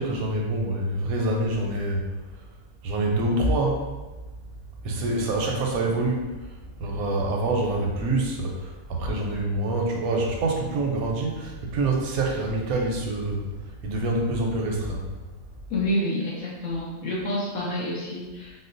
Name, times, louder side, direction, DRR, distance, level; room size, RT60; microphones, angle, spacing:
voice 1, 0.0-2.1 2.8-3.9 4.8-6.3 6.8-15.1, right 2 dB, 85° right, 0 dB, 1.1 m, -26 dB
voice 2, 15.7-18.5, left 1 dB, 80° left, -5 dB, 1.2 m, -28 dB
4.2 x 2.1 x 2.5 m, 1.2 s
omnidirectional pair, 1.5 m